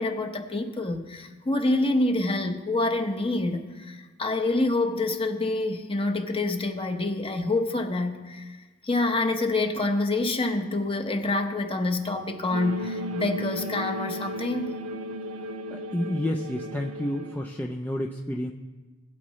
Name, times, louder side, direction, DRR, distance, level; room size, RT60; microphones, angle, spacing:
voice 1, 0.0-8.6 8.8-14.8, left 2 dB, 25° left, 5 dB, 0.9 m, -27 dB
sound 1, 12.5-17.6, equal, 85° right, 0.6 m, -35 dB
voice 2, 15.7-18.5, left 1 dB, 10° left, 2 dB, 0.4 m, -30 dB
19.5 x 8.5 x 3.1 m, 1.3 s
head